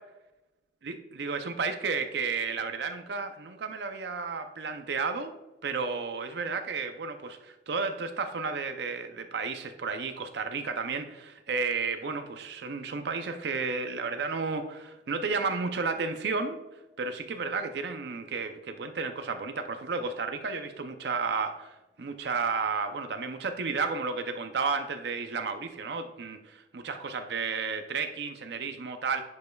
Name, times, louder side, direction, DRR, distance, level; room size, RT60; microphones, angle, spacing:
voice 1, 0.8-5.3 5.6-16.6 17.0-29.2, right 4 dB, 65° right, 8 dB, 0.5 m, -32 dB
10.5 x 5.3 x 2.3 m, 1.0 s
head